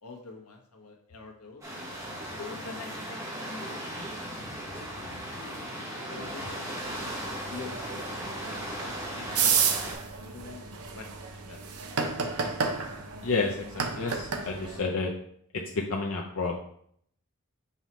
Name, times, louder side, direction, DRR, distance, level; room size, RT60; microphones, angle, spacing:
voice 1, 0.0-1.6 2.4-4.4 4.6-5.7 5.9-6.8 7.5-11.6, left 4 dB, 90° left, 2 dB, 1.2 m, -46 dB
sound 1, 1.6-9.9, equal, 15° right, 1.3 m, -37 dB
sound 2, 6.8-14.8, right 6 dB, 85° right, 0.8 m, -32 dB
voice 2, 13.2-15.1 15.9-16.6, left 4 dB, 65° left, 0 dB, 0.6 m, -30 dB
5.6 x 5.5 x 3.1 m, 0.66 s
head